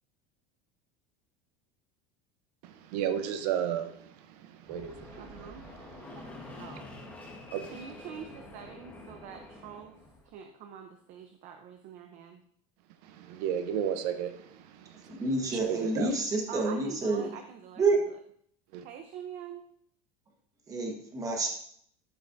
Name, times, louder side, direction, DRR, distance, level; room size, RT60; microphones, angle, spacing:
voice 1, 2.6-6.8 7.5-7.7 13.0-16.1 18.7-18.8, right 9 dB, 75° right, 9 dB, 0.8 m, -35 dB
Fixed-wing aircraft airplane, 4.7-10.3, left 2 dB, 10° left, 1.3 m, -47 dB
voice 2, 5.1-5.7 6.6-7.1 7.7-12.4 16.5-18.0 18.8-19.7, right 8 dB, 40° right, 6 dB, 0.6 m, -45 dB
voice 3, 15.1-17.3 17.8-18.0 20.7-21.5, right 3 dB, 15° right, 1 dB, 1.2 m, -28 dB
13.0 x 5.5 x 2.6 m, 0.65 s
cardioid pair, 170°, 20 cm